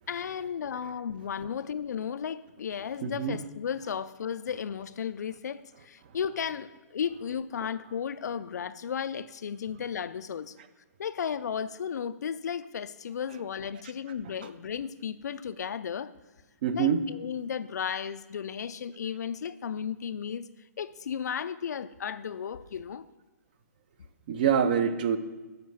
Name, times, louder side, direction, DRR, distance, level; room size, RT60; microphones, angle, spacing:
voice 1, 0.1-10.6 11.0-16.1 16.7-20.5 20.8-23.1, left 7 dB, 80° left, 14 dB, 0.4 m, -34 dB
voice 2, 3.0-3.4 16.6-17.0 24.3-25.2, right 8 dB, 35° right, 11 dB, 0.5 m, -25 dB
7.2 x 5.9 x 6.2 m, 1.2 s
hypercardioid pair, 175°, 9 cm